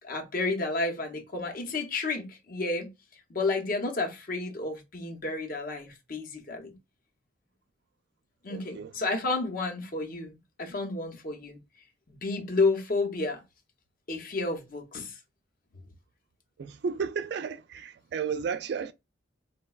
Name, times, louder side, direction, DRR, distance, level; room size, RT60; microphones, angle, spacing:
voice 1, 0.0-2.9 3.3-6.7 8.4-10.3 10.6-11.6 12.1-13.4 14.1-15.2, left 3 dB, 45° left, 0.7 m, -31 dB
voice 2, 8.5-8.9 16.6-18.9, right 6 dB, 55° right, 0.3 m, -33 dB
3.9 x 2.2 x 2.2 m
head